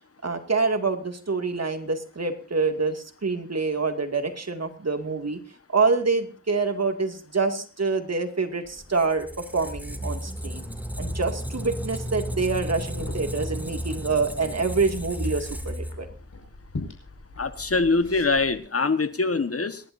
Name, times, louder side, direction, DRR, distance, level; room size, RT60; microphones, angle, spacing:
voice 1, 0.2-5.4 5.7-10.6 11.0-16.1, right 4 dB, 50° right, 5 dB, 2.4 m, -26 dB
Squeak, 8.7-16.4, equal, 5° right, 2.6 m, -33 dB
Liquid, 11.8-18.6, left 2 dB, 60° left, 5.6 m, -42 dB
voice 2, 17.4-19.8, left 3 dB, 45° left, 11 dB, 1.4 m, -23 dB
28.0 x 11.5 x 2.7 m, 0.36 s
cardioid pair, 50°, 33 cm